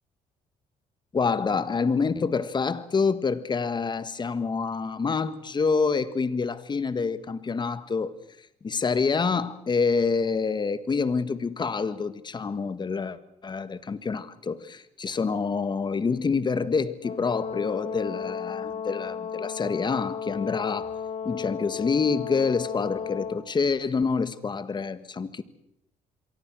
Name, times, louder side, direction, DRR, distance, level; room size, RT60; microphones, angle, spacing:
voice 1, 1.1-8.1 8.6-20.9 21.2-25.4, left 5 dB, 30° left, 1.5 m, -27 dB
Brass instrument, 17.0-23.4, left 7 dB, 60° left, 3.9 m, -34 dB
27.0 x 23.0 x 6.2 m
cardioid pair, 105°, 15 cm